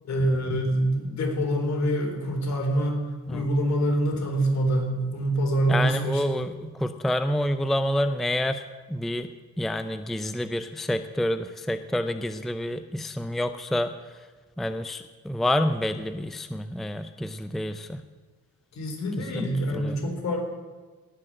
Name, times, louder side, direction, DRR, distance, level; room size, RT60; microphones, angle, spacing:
voice 1, 0.0-3.0 3.3-6.4 18.7-20.5, right 1 dB, 60° left, 1 dB, 4.1 m, -25 dB
voice 2, 5.7-8.6 8.9-9.3 9.6-13.9 14.6-18.0 19.2-19.5 19.7-20.0, left 1 dB, ahead, 10 dB, 0.5 m, -28 dB
18.0 x 6.1 x 7.5 m, 1.3 s
cardioid pair, 90°, 30 cm